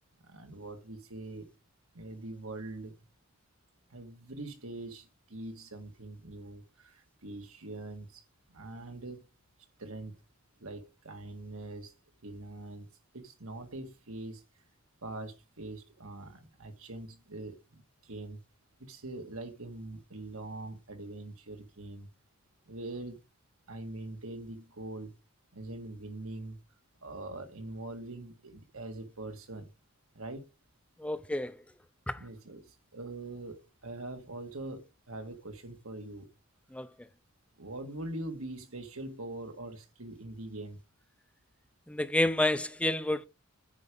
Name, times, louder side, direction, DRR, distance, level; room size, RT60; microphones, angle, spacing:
voice 1, 0.2-1.5 1.9-2.9 3.9-8.2 8.5-9.2 9.8-10.2 10.6-11.9 12.2-12.9 13.1-14.4 15.0-18.4 18.8-22.1 22.7-23.2 23.7-25.1 25.5-26.6 27.0-29.7 30.1-30.5 32.2-36.3 37.6-40.8, right 2 dB, 80° right, 2.0 m, -43 dB
voice 2, 31.0-31.6 32.1-32.2 36.7-36.9 41.9-43.3, left 1 dB, 5° left, 0.4 m, -29 dB
9.6 x 5.0 x 5.4 m
head